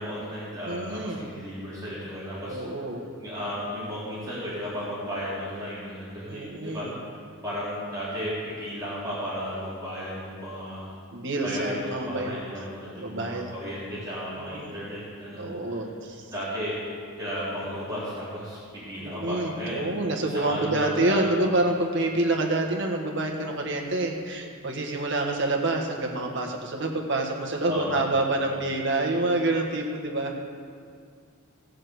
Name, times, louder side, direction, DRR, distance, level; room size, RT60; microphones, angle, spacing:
voice 1, 0.0-2.6 3.2-6.9 7.4-10.8 11.4-15.8 16.3-16.7 17.2-19.8 20.3-21.3 27.7-28.1 28.4-28.6, equal, 15° right, -10 dB, 3.6 m, -34 dB
voice 2, 0.6-1.3 2.5-3.1 6.3-6.9 11.1-13.5 14.3-14.8 15.4-16.3 19.0-30.4, right 2 dB, 55° right, 1 dB, 1.6 m, -27 dB
16.0 x 6.5 x 8.0 m, 2.2 s
head